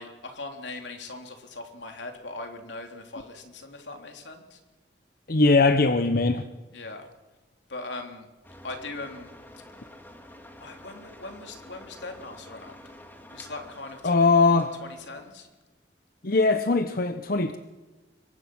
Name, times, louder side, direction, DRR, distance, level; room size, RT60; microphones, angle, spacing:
voice 1, 0.0-4.6 6.7-7.1 7.7-8.3 8.6-9.3 10.6-12.8 13.3-14.1 14.8-15.5, left 2 dB, 80° left, 4 dB, 3.4 m, -40 dB
voice 2, 5.3-6.4 14.0-14.7 16.2-17.6, left 3 dB, 55° left, 8 dB, 1.0 m, -21 dB
sound 1, 8.4-15.3, left 1 dB, 10° left, 2.5 m, -48 dB
26.0 x 22.5 x 6.3 m, 1.2 s
head